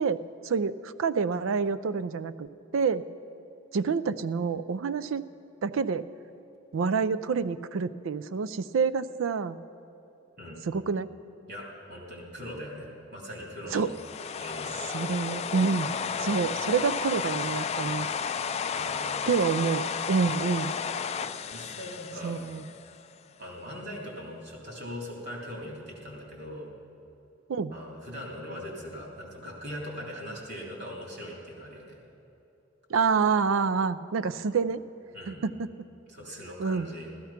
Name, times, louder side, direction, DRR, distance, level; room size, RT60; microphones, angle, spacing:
voice 1, 0.0-2.5 2.7-3.0 3.7-5.2 5.6-6.1 6.7-9.6 10.6-11.1 13.7-13.9 14.9-15.9 16.2-18.1 19.3-20.7 22.2-22.6 27.5-27.7 32.9-34.8 35.3-35.7 36.6-36.9, right 5 dB, 80° right, 15 dB, 0.4 m, -27 dB
voice 2, 11.5-13.9 14.4-14.7 16.1-16.4 18.7-19.3 21.5-22.4 23.4-26.7 27.7-32.0 34.4-34.6 35.1-35.4 36.1-37.1, equal, 60° right, -2 dB, 3.2 m, -41 dB
sound 1, 13.7-23.0, left 6 dB, 35° left, 0.4 m, -32 dB
15.0 x 13.5 x 5.8 m, 3.0 s
head